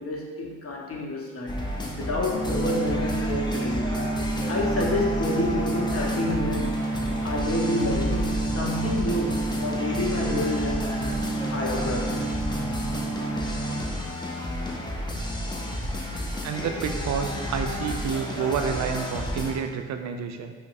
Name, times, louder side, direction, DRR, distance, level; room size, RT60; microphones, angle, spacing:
voice 1, 0.0-4.0 4.5-7.0 7.2-10.9 11.5-12.3, left 1 dB, 45° left, -1 dB, 0.8 m, -29 dB
sound 1, 1.5-19.6, left 1 dB, 15° left, 0.5 m, -31 dB
sound 2, 2.3-13.7, right 2 dB, 85° left, 0.7 m, -30 dB
voice 2, 16.4-20.5, right 7 dB, 55° right, 6 dB, 0.4 m, -29 dB
5.1 x 2.0 x 2.5 m, 1.4 s
supercardioid pair, 50°, 33 cm